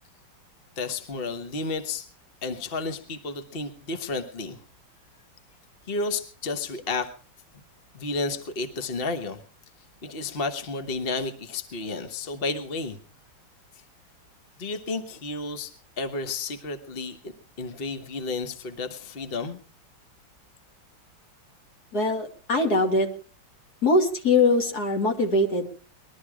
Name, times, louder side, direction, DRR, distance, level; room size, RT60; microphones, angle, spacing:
voice 1, 0.8-2.1 2.4-4.6 5.9-7.1 7.9-9.4 10.0-13.0 14.6-17.3 17.6-19.6, left 3 dB, 35° left, 8 dB, 1.2 m, -32 dB
voice 2, 21.9-23.1 23.8-25.7, left 2 dB, 50° left, 3 dB, 3.0 m, -22 dB
21.0 x 12.5 x 4.9 m, 0.40 s
omnidirectional pair, 2.2 m